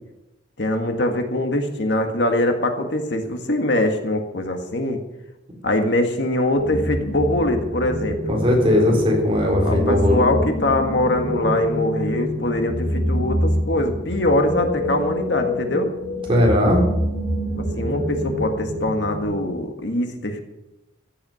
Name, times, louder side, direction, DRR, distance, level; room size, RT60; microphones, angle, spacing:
voice 1, 0.6-5.0 5.6-8.4 9.6-15.9 17.7-20.4, left 1 dB, 65° left, 4 dB, 1.8 m, -22 dB
sound 1, 6.5-19.2, equal, 50° left, 4.7 m, -26 dB
voice 2, 8.3-10.3 16.3-16.8, left 1 dB, 30° right, -1 dB, 3.9 m, -18 dB
15.5 x 8.6 x 6.4 m, 0.95 s
head